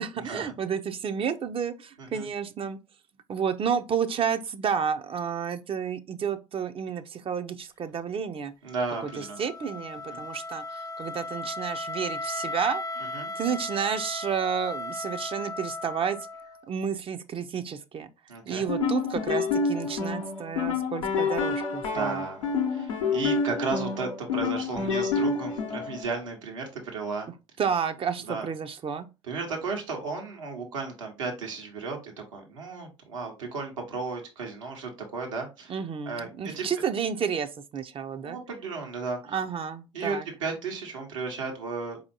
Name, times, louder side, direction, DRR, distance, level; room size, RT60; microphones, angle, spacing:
voice 1, 0.0-2.8 3.3-8.5 9.0-13.0 13.4-16.2 16.7-18.1 18.5-22.2 27.6-29.1 35.7-38.4 39.3-40.3, right 7 dB, 35° right, 0.5 m, -31 dB
voice 2, 8.6-9.4 10.1-10.2 13.1-13.3 18.3-18.6 21.9-27.3 28.3-28.5 29.3-35.8 36.1-36.7 38.2-39.3 39.9-42.0, right 4 dB, 85° right, 1.1 m, -34 dB
Wind instrument woodwind instrument, 8.7-16.7, left 2 dB, 25° left, 0.5 m, -36 dB
sound 1, 18.6-26.0, left 4 dB, 85° left, 0.7 m, -28 dB
4.3 x 2.8 x 2.7 m
hypercardioid pair, 60°, 16 cm